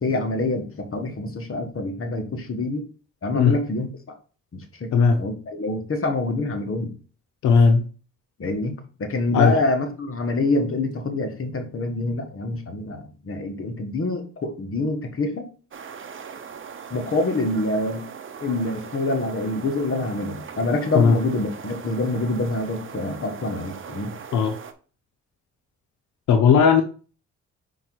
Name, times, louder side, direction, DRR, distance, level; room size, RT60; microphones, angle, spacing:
voice 1, 0.0-2.9 3.2-3.9 4.5-6.9 8.4-15.5 16.9-18.1 18.4-24.1, left 2 dB, 50° left, 6 dB, 1.5 m, -26 dB
voice 2, 7.4-7.9 9.3-9.6 20.9-21.2 24.3-24.6 26.3-26.8, left 5 dB, 90° left, 7 dB, 0.7 m, -16 dB
sound 1, 15.7-24.7, right 6 dB, 45° right, 0.8 m, -40 dB
5.1 x 4.6 x 4.7 m, 0.38 s
cardioid pair, 80°, 29 cm